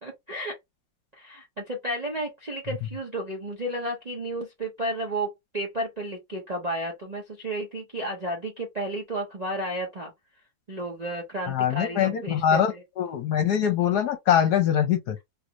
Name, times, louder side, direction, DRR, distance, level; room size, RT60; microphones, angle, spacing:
voice 1, 0.0-0.6 1.2-10.1 10.7-12.6, right 1 dB, 40° right, 0.5 m, -32 dB
voice 2, 11.5-15.2, left 9 dB, 65° left, 1.2 m, -23 dB
3.3 x 2.5 x 2.9 m
omnidirectional pair, 2.0 m